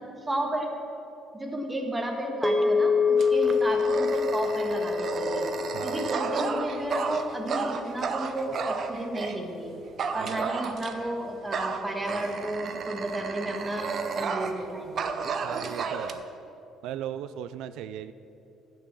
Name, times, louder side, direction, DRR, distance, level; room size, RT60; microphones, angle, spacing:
voice 1, 0.2-0.7 1.3-5.5 5.8-9.7 10.1-15.1, right 1 dB, 15° right, 2 dB, 1.6 m, -32 dB
sound 1, 2.4-6.9, left 5 dB, 5° left, 0.9 m, -26 dB
Dog, 3.2-9.4 10.0-11.1 11.5-14.7 15.0-16.1, right 5 dB, 45° right, 0.7 m, -32 dB
voice 2, 5.7-6.4 10.2-10.5 15.4-16.2 16.8-18.1, right 10 dB, 85° right, 12 dB, 0.3 m, -37 dB
11.5 x 6.1 x 7.5 m, 2.8 s
cardioid pair, 125°, 0 cm